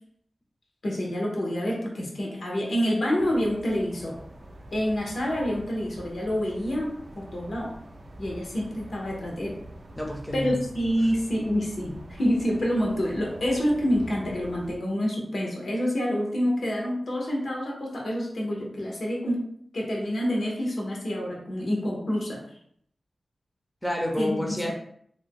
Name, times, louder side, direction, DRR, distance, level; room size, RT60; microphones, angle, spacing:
voice 1, 0.8-4.2 4.7-7.8 8.2-9.6 10.3-22.4 24.2-24.4, equal, 70° left, -2 dB, 0.8 m, -27 dB
sound 1, 3.2-14.8, right 1 dB, 50° right, 0.3 m, -45 dB
voice 2, 10.0-10.6 23.8-24.7, left 1 dB, 10° left, 0 dB, 0.5 m, -29 dB
2.5 x 2.1 x 3.6 m, 0.65 s
wide cardioid pair, 95°, 0 cm